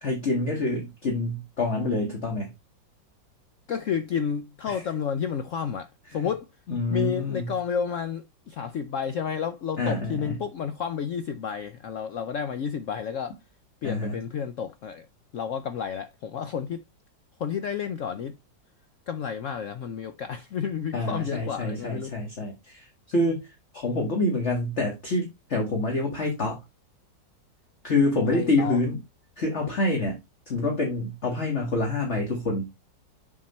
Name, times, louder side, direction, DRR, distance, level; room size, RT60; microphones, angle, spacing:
voice 1, 0.0-2.5 4.7-4.8 6.1-6.3 6.7-7.5 9.8-10.4 13.8-14.2 20.9-23.5 23.7-26.6 27.8-29.0 29.4-30.2 30.5-32.7, left 2 dB, 40° left, 1.8 m, -27 dB
voice 2, 3.7-6.5 6.9-13.4 13.8-15.1 15.3-16.8 17.4-18.4 19.1-22.1 28.3-28.8, left 7 dB, 80° left, 0.7 m, -31 dB
7.3 x 4.4 x 4.1 m
omnidirectional pair, 2.0 m